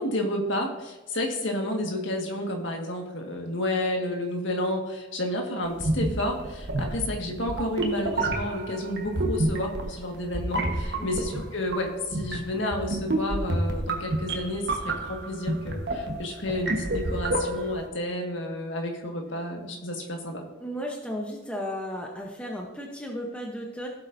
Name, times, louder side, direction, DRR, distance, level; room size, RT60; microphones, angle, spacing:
voice 1, 0.0-20.4, left 1 dB, 70° left, 2 dB, 1.7 m, -31 dB
sound 1, 5.7-17.9, right 1 dB, 55° right, 1.3 m, -29 dB
voice 2, 20.6-23.9, equal, 5° left, 0 dB, 0.8 m, -34 dB
16.0 x 7.6 x 2.7 m, 1.1 s
head